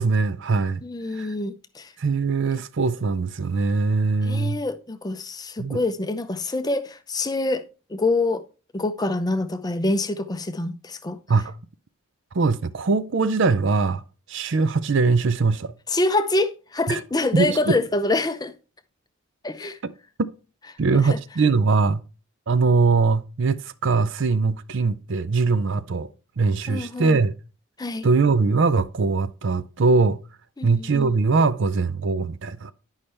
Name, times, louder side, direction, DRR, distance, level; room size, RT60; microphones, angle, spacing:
voice 1, 0.0-0.8 1.1-1.3 2.0-4.6 5.6-5.8 11.3-11.5 12.3-14.0 14.3-15.7 16.9-17.0 17.3-17.8 20.2-20.3 20.8-22.0 22.5-26.1 26.4-27.3 28.0-30.2 30.6-32.7, right 4 dB, 55° right, 0.5 m, -21 dB
voice 2, 0.8-1.9 4.2-7.6 7.9-8.4 8.7-11.2 15.9-18.5 19.4-19.8 20.9-21.2 26.7-27.2 27.8-28.1 30.6-31.2, left 2 dB, 20° left, 0.5 m, -26 dB
10.5 x 5.6 x 3.2 m
head